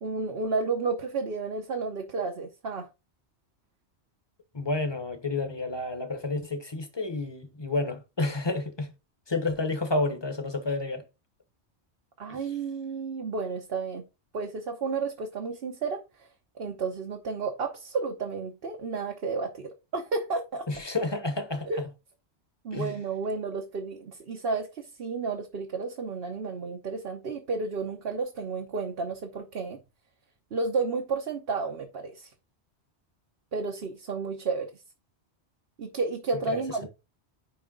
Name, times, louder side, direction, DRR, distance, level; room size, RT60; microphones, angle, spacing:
voice 1, 0.0-2.9 12.2-14.0 14.3-16.3 16.6-20.7 21.7-21.8 22.6-29.8 30.5-32.3 33.5-34.7 35.8-36.9, right 4 dB, 60° right, 1.1 m, -32 dB
voice 2, 4.5-8.9 9.3-11.0 12.3-12.4 20.7-21.7 22.7-22.9 36.5-36.9, left 2 dB, 25° left, 1.2 m, -30 dB
10.0 x 3.4 x 3.8 m
omnidirectional pair, 1.1 m